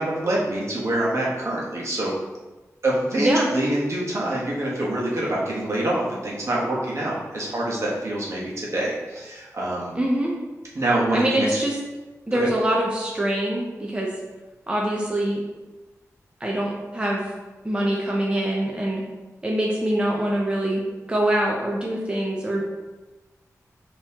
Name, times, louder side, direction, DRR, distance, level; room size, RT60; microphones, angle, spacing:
voice 1, 0.0-2.1 2.8-9.9 10.7-11.5 12.3-12.5, right 1 dB, 55° right, -4 dB, 1.1 m, -25 dB
voice 2, 3.2-3.5 9.9-10.3 11.1-11.7 12.3-14.1 14.7-15.4 16.4-17.3 17.6-19.0 19.4-20.8 21.1-22.6, right 1 dB, 15° right, -2 dB, 0.6 m, -24 dB
5.3 x 2.9 x 2.9 m, 1.2 s
wide cardioid pair, 85°, 6 cm